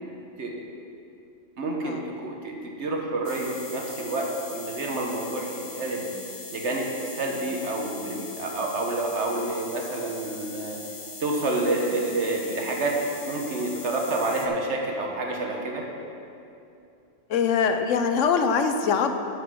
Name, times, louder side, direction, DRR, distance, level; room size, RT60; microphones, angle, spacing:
voice 1, 1.6-6.0 6.5-6.9 7.2-10.8 11.2-15.8, right 2 dB, 65° right, 0 dB, 1.3 m, -28 dB
sound 1, 3.2-14.5, left 4 dB, 30° left, 0.5 m, -41 dB
voice 2, 17.3-19.2, left 6 dB, 90° left, 7 dB, 1.0 m, -23 dB
11.5 x 5.1 x 6.1 m, 2.7 s
omnidirectional pair, 1.3 m